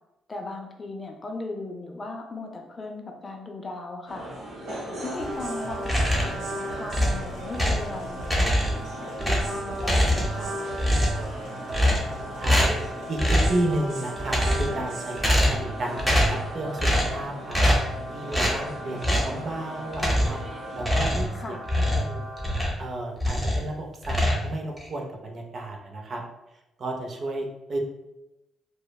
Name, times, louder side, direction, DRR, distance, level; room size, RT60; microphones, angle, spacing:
voice 1, 0.3-4.3 5.0-8.6 9.0-10.6 21.3-21.7, left 2 dB, 30° left, 2 dB, 0.4 m, -37 dB
sound 1, 4.1-21.3, right 1 dB, 65° right, 0.9 m, -39 dB
sound 2, 5.0-22.6, right 1 dB, 90° right, 0.7 m, -37 dB
sound 3, 5.8-6.4 6.9-7.9 8.2-8.9 9.2-10.5 10.8-11.3 11.7-12.2 12.4-12.9 13.2-13.6 14.2-14.8 15.2-15.7 16.0-16.4 16.8-17.2 17.5-17.9 18.3-18.6 19.0-19.3 19.9-20.4 20.8-22.8 23.2-23.7 24.0-24.9, equal, ahead, 0.7 m, -23 dB
voice 2, 13.1-17.6 18.1-20.4 20.7-21.6 21.9-22.3 22.8-26.2 26.8-27.8, right 1 dB, 50° right, 1 dB, 0.4 m, -32 dB
3.0 x 2.0 x 2.2 m, 0.94 s
cardioid pair, 90°, 0 cm